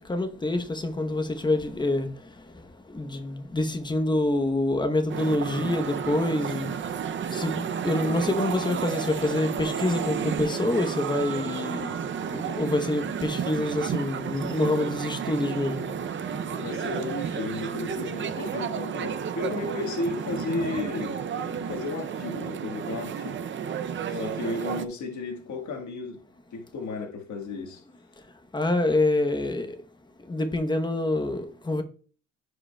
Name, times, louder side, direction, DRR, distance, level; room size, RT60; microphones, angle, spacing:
voice 1, 0.0-2.1 2.9-6.7 7.3-11.9 12.3-15.9 28.5-29.8 30.3-31.8, left 2 dB, 15° left, 0.8 m, -26 dB
sound 1, 5.1-24.9, right 7 dB, 40° right, 0.5 m, -32 dB
voice 2, 16.5-23.4 24.1-26.2 26.5-27.8, left 3 dB, 70° left, 1.4 m, -34 dB
14.5 x 4.9 x 2.2 m
cardioid pair, 125°, 30 cm